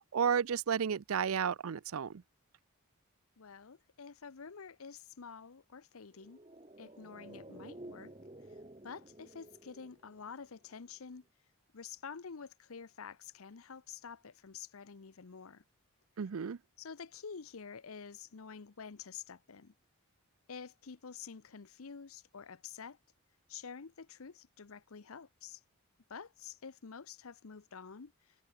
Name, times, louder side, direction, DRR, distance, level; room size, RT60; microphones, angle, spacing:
voice 1, 0.1-2.2 16.2-16.6, right 7 dB, 75° right, 0.5 m, -32 dB
voice 2, 3.4-6.4 6.8-8.1 8.8-11.2 11.7-15.6 16.8-19.7 20.5-23.0 23.5-25.6 26.1-28.3, left 6 dB, 75° left, 0.7 m, -48 dB
sound 1, 6.1-10.7 11.0-11.1, right 1 dB, 25° right, 1.2 m, -52 dB
head